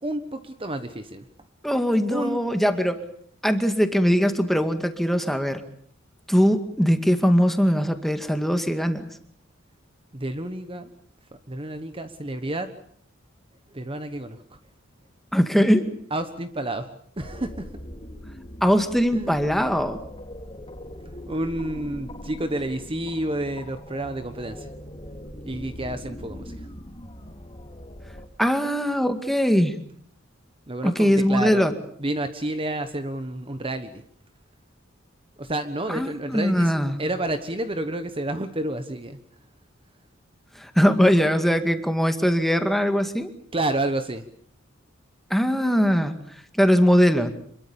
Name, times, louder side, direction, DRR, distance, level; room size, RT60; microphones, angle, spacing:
voice 1, 0.0-1.2 2.1-2.4 10.1-10.9 11.5-12.7 13.7-14.4 16.1-17.7 19.1-19.4 21.3-24.7 25.4-26.7 30.7-31.6 32.0-34.0 35.4-36.7 37.0-39.2 43.5-44.2, right 1 dB, 25° right, 9 dB, 1.2 m, -30 dB
voice 2, 1.6-3.0 3.4-5.6 6.3-9.0 15.3-15.9 18.6-20.0 28.4-29.7 30.8-31.7 35.9-37.0 40.6-43.3 45.3-46.1 46.5-47.3, equal, ahead, 7 dB, 2.1 m, -21 dB
sound 1, 17.2-28.3, equal, 30° left, 2.6 m, -41 dB
27.0 x 22.5 x 7.0 m, 0.62 s
head